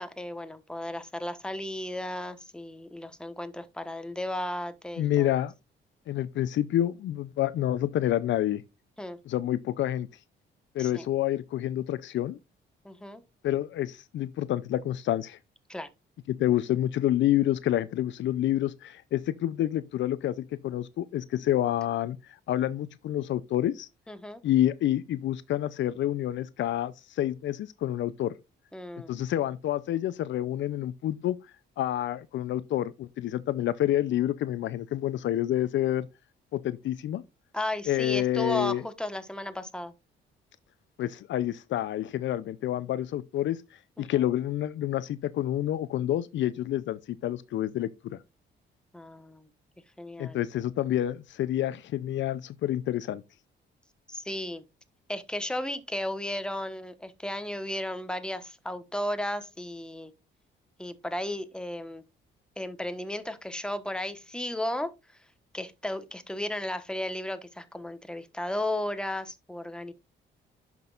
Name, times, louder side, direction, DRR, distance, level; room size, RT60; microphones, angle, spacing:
voice 1, 0.0-5.3 9.0-9.2 10.8-11.1 12.8-13.2 15.7-15.9 24.1-24.4 28.7-29.2 37.5-39.9 44.0-44.3 48.9-49.5 50.0-50.4 54.1-54.6 55.1-60.1 60.8-62.0 62.6-64.9 65.5-69.9, left 1 dB, 5° left, 1.2 m, -34 dB
voice 2, 5.0-5.5 6.1-8.6 9.3-10.1 10.7-12.4 13.4-15.4 16.3-22.2 22.5-23.9 24.4-28.3 29.1-31.4 31.8-36.1 36.5-37.2 37.9-38.8 41.0-43.6 44.0-48.2 50.2-53.2, left 12 dB, 70° left, 0.5 m, -28 dB
10.5 x 6.1 x 2.4 m
cardioid pair, 90°, 20 cm